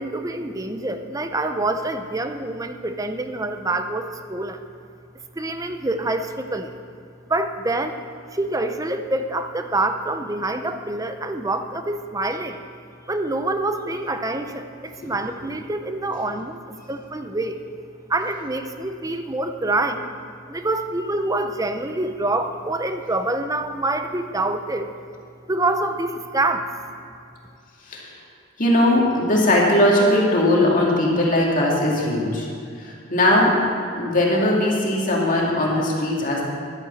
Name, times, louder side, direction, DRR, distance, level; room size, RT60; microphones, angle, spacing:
voice 1, 0.0-4.6 5.4-6.8 7.3-8.0 8.3-12.6 13.1-16.6 16.9-17.6 18.1-20.1 20.5-24.9 25.5-26.7, right 2 dB, 15° right, 7 dB, 0.6 m, -26 dB
voice 2, 28.6-32.5 32.8-33.6 33.9-36.4, left 1 dB, 40° left, -3 dB, 2.3 m, -19 dB
11.5 x 8.9 x 7.1 m, 2.4 s
head